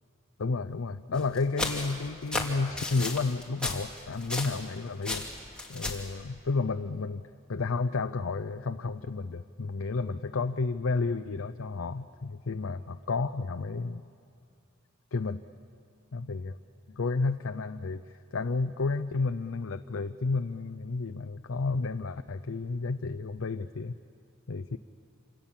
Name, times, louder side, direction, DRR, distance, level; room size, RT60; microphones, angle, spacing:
voice 1, 0.4-5.3 5.7-14.1 15.1-15.4 16.1-16.6 16.9-24.0 24.5-24.8, left 3 dB, 70° left, 8 dB, 0.6 m, -31 dB
sound 1, 1.1-4.7 5.0-6.1, left 2 dB, 5° left, 2.6 m, -34 dB
27.5 x 26.5 x 7.3 m, 2.3 s
head